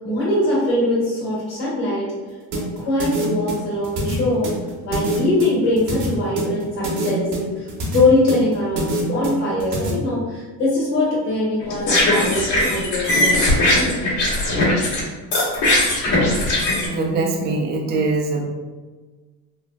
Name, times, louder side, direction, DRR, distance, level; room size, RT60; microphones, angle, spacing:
voice 1, 0.0-2.0 2.5-4.5 4.8-7.7 7.9-14.0, left 2 dB, 85° left, -8 dB, 1.5 m, -22 dB
sound 1, 2.5-9.9, right 2 dB, 65° right, 1.0 m, -26 dB
sound 2, 11.6-15.0 15.3-16.9, left 1 dB, 70° left, 1.3 m, -19 dB
voice 2, 16.9-18.5, right 3 dB, 25° right, 1 dB, 0.4 m, -22 dB
3.2 x 2.5 x 2.3 m, 1.3 s
cardioid pair, 105°, 44 cm